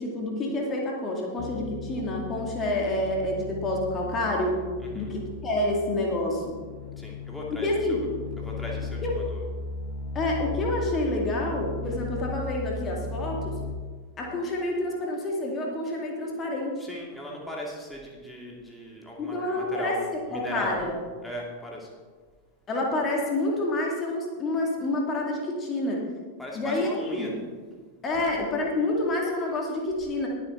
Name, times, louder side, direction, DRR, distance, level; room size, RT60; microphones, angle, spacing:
voice 1, 0.0-4.6 4.9-6.5 7.6-8.0 9.0-9.1 10.1-13.6 14.2-16.7 19.2-20.9 22.7-26.0 26.5-27.3 28.0-30.3, left 1 dB, 25° left, -1 dB, 2.3 m, -28 dB
sound 1, 1.4-13.8, left 3 dB, 50° left, 0.6 m, -36 dB
voice 2, 4.8-5.1 7.0-8.0 8.4-9.5 16.8-20.0 20.3-20.8 21.2-21.9 26.4-27.4 28.1-28.2, equal, 5° left, -3 dB, 2.4 m, -38 dB
21.0 x 7.5 x 3.9 m, 1.5 s
figure-of-eight pair, 90°, 0 cm